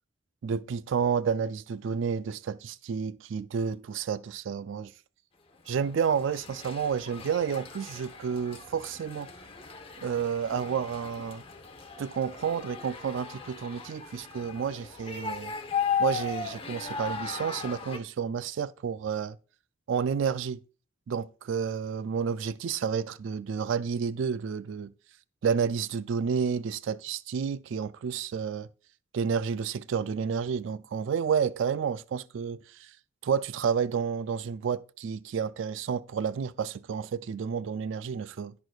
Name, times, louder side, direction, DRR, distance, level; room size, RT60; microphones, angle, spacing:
voice 1, 0.4-4.9 5.7-9.3 10.0-11.4 12.0-15.5 16.0-19.4 19.9-20.6 21.1-24.9 25.4-28.7 29.1-33.0 33.2-38.5, right 6 dB, 70° right, 0.3 m, -30 dB
sound 1, 5.7-18.0, left 6 dB, 25° left, 0.9 m, -37 dB
17.0 x 6.4 x 2.4 m
head